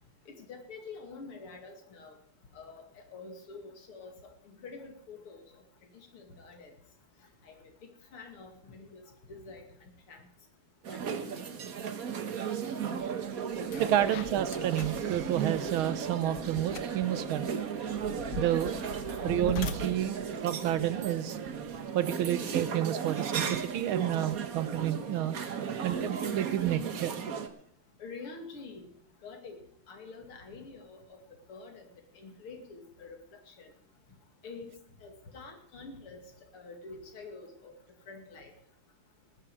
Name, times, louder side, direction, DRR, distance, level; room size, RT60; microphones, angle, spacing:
voice 1, 0.3-2.2 2.5-5.4 5.9-6.8 7.4-7.7 8.1-9.7 10.1-10.2 10.9-11.4 28.0-28.9 29.2-31.2 31.5-31.9 32.1-33.7 34.4-36.2 36.5-37.7 38.1-38.5, left 4 dB, 85° left, 3 dB, 3.3 m, -47 dB
sound 1, 10.8-27.5, right 7 dB, 50° right, 1.4 m, -35 dB
sound 2, 13.0-13.1 13.5-21.8, left 6 dB, 65° left, 1.5 m, -43 dB
voice 2, 13.8-17.5 18.4-18.7 19.2-21.4 21.9-25.4 25.8-27.2, right 12 dB, 75° right, 14 dB, 1.6 m, -30 dB
19.5 x 9.8 x 4.9 m, 0.69 s
omnidirectional pair, 2.4 m